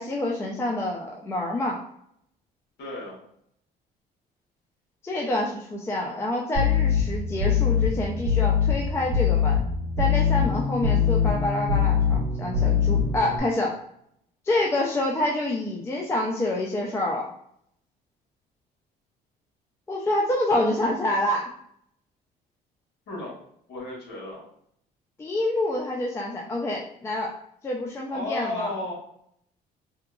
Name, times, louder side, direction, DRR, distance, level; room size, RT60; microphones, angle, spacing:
voice 1, 0.0-1.8 5.0-9.6 10.0-13.8 14.5-17.3 19.9-21.5 25.2-27.3 27.6-28.7, left 1 dB, 15° left, -2 dB, 0.4 m, -27 dB
voice 2, 2.8-3.2 23.1-23.3 23.7-24.4 28.1-28.9, left 2 dB, 75° left, -4 dB, 1.3 m, -33 dB
sound 1, 6.5-13.4, left 7 dB, 50° right, 1.0 m, -23 dB
2.8 x 2.2 x 2.3 m, 0.70 s
cardioid pair, 110°, 17 cm